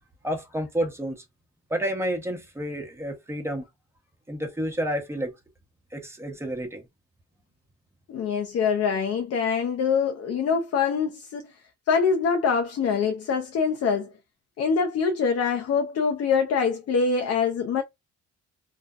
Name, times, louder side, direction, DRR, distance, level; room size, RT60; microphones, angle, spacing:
voice 1, 0.2-1.2 1.7-3.6 4.3-5.3 5.9-6.9, equal, 10° right, 0.9 m, -30 dB
voice 2, 8.1-11.5 11.9-14.1 14.6-17.8, left 6 dB, 55° left, 0.5 m, -24 dB
2.6 x 2.1 x 2.3 m
cardioid pair, 90°, 30 cm